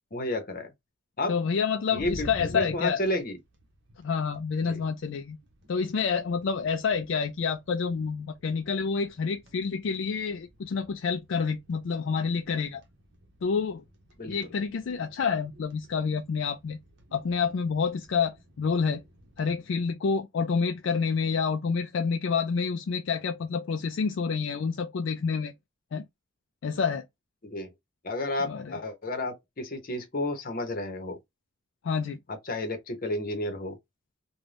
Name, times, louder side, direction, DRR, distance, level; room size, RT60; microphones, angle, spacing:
voice 1, 0.1-0.7 1.2-1.4 1.9-3.4 4.6-4.8 14.2-14.3 27.4-27.7 28.0-31.2 32.5-33.8, left 1 dB, 45° left, 0.9 m, -31 dB
voice 2, 1.3-3.0 4.0-5.4 5.7-12.8 13.4-13.8 14.3-16.8 17.1-19.0 19.4-25.5 25.9-26.0 26.6-27.0 28.5-28.8 31.8-32.2, left 5 dB, 65° left, 0.4 m, -28 dB
sound 1, 1.9-19.5, equal, 60° right, 0.8 m, -50 dB
2.5 x 2.2 x 3.2 m
head